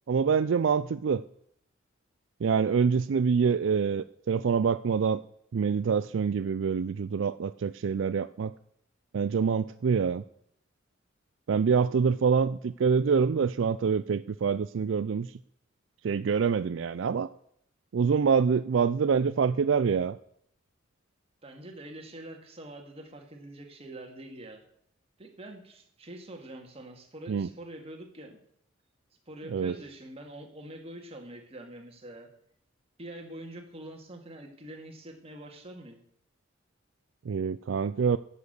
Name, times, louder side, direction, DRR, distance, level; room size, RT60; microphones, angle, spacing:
voice 1, 0.1-1.2 2.4-5.2 5.5-8.5 9.1-10.2 11.5-15.3 16.0-17.3 17.9-20.2 27.3-27.5 29.5-29.7 37.3-38.2, right 6 dB, 70° right, 14 dB, 0.4 m, -26 dB
voice 2, 21.4-24.6 25.2-28.4 29.3-32.3 33.0-36.0, right 1 dB, 30° right, 3 dB, 2.2 m, -45 dB
11.5 x 7.5 x 8.1 m, 0.70 s
head